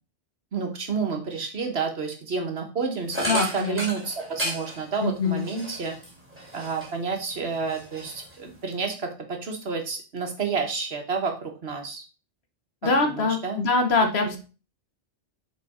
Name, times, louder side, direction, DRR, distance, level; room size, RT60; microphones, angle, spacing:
voice 1, 0.5-5.9 6.5-12.0 12.8-13.6 14.0-14.3, right 5 dB, 60° right, 4 dB, 1.5 m, -30 dB
sound 1, 3.1-7.1 7.5-8.7, right 1 dB, 10° right, 2.6 m, -34 dB
voice 2, 3.3-3.8 5.0-5.5 12.8-14.4, left 3 dB, 60° left, 6 dB, 1.3 m, -23 dB
6.9 x 4.0 x 4.3 m, 0.34 s
omnidirectional pair, 1.2 m